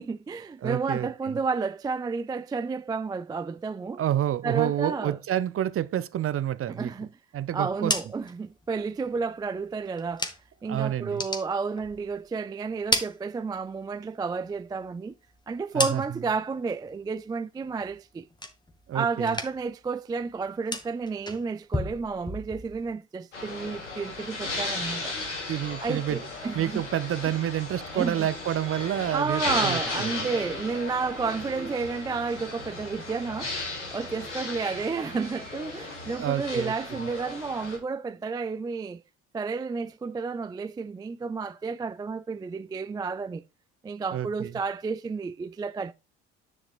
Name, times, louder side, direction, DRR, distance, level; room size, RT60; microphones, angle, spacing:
voice 1, 0.0-4.0 4.4-5.2 6.7-7.1 7.5-10.3 10.6-15.1 15.5-18.3 18.9-25.2 25.8-26.8 27.3-27.4 27.9-28.3 29.1-33.6 33.9-39.0 39.3-43.4 43.8-45.9, right 4 dB, 10° right, 0.3 m, -31 dB
voice 2, 0.6-1.1 4.0-6.9 7.3-7.9 10.7-11.2 15.7-16.0 18.9-19.3 25.5-26.2 26.5-30.1 36.2-36.7 44.1-44.5, right 11 dB, 40° right, 0.7 m, -28 dB
sound 1, 7.6-10.7 11.0-12.3 12.6-13.9 14.3-16.4 16.8-17.3 17.6-18.9 19.2-19.8 20.1-22.9, left 2 dB, 10° left, 1.7 m, -35 dB
sound 2, 23.3-37.8, left 3 dB, 90° left, 3.2 m, -35 dB
10.5 x 5.9 x 2.5 m
hypercardioid pair, 60°, 35 cm